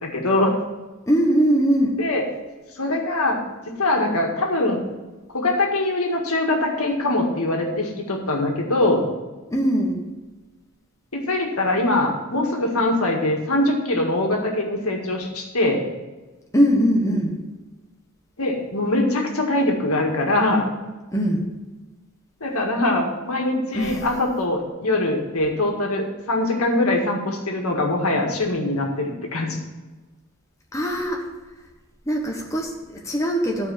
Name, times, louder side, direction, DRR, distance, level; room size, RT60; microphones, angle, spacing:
voice 1, 0.0-0.5 2.0-2.2 2.8-3.4 3.7-4.8 5.3-9.1 11.1-15.8 18.4-20.7 22.4-29.6, left 2 dB, 80° left, 1 dB, 1.9 m, -22 dB
voice 2, 1.1-2.0 9.5-10.0 16.5-17.4 21.1-21.4 23.7-24.0 30.7-31.2 32.1-33.7, equal, 15° left, 0 dB, 1.2 m, -21 dB
13.0 x 4.9 x 7.1 m, 1.2 s
head